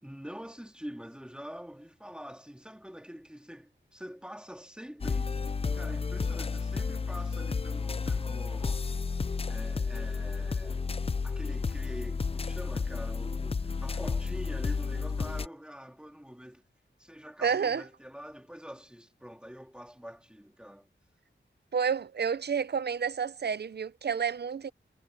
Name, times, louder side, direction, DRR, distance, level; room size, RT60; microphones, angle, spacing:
voice 1, 0.0-5.5 5.7-8.9 9.5-10.8 11.2-16.6 17.0-20.9, equal, 5° right, 3.0 m, -45 dB
sound 1, 5.0-15.5, left 4 dB, 30° left, 0.4 m, -32 dB
voice 2, 17.4-17.8 21.7-24.7, right 6 dB, 55° right, 0.6 m, -30 dB
wide cardioid pair, 95°, 20 cm